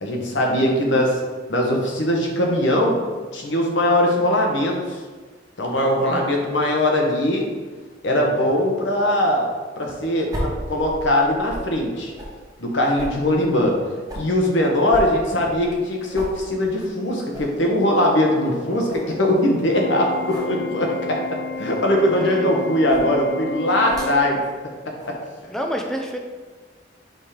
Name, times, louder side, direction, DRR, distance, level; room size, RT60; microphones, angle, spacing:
voice 1, 0.0-1.2 1.5-3.0 3.3-5.0 5.6-7.4 8.0-9.5 9.8-12.1 12.6-13.8 14.1-24.4, left 1 dB, 80° left, 0 dB, 1.1 m, -21 dB
voice 2, 6.0-6.3 19.7-20.0 22.1-22.5 25.5-26.2, equal, 5° left, 2 dB, 0.5 m, -29 dB
sound 1, 10.3-11.7 12.2-12.3 13.0-14.3 14.9-15.9 16.1-16.4 16.8-16.9 17.3-17.5 18.0-18.1 18.5-18.6 18.9-19.1 20.3-20.5 21.5-21.7 22.9-23.1 23.9-24.2 25.0-25.2, equal, 20° right, 1.2 m, -34 dB
Organ, 19.7-24.7, left 4 dB, 65° left, 1.5 m, -32 dB
5.2 x 3.7 x 5.0 m, 1.4 s
head